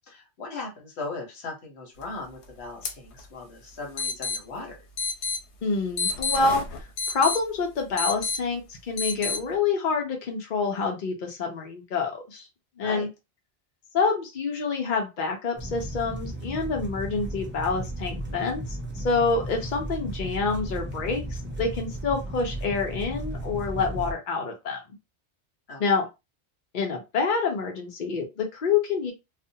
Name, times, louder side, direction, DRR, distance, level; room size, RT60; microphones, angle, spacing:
voice 1, 0.1-4.8 12.8-13.1 25.7-25.8, left 3 dB, 70° left, 0 dB, 1.1 m, -38 dB
sound 1, 2.8-2.9 3.2-3.3 4.0-4.4 5.0-5.4 6.0-7.4 8.0-8.4 9.0-9.4, left 4 dB, 85° left, 0.9 m, -28 dB
voice 2, 5.6-6.6 7.1-12.4 12.8-13.1 13.9-24.8 25.8-26.1 26.7-29.1, left 4 dB, 55° left, 2 dB, 0.7 m, -27 dB
sound 2, 15.6-24.1, right 1 dB, 15° right, 0.4 m, -35 dB
2.4 x 2.1 x 2.6 m, 0.25 s
omnidirectional pair, 1.1 m